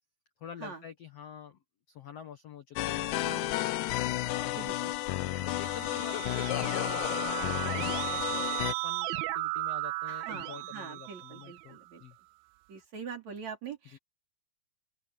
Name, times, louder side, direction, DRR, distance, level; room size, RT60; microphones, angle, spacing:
voice 1, 0.4-1.6 1.9-4.9 5.5-12.2 13.9-14.0, left 8 dB, 60° left, 1.7 m, -47 dB
sound 1, 2.8-8.7, left 16 dB, 85° left, 1.7 m, -32 dB
voice 2, 3.1-3.7 4.5-4.9 10.1-12.0 12.7-14.0, right 6 dB, 45° right, 4.7 m, -43 dB
Keyboard (musical), 5.2-11.8, right 20 dB, 80° right, 2.3 m, -36 dB
open air
omnidirectional pair, 4.4 m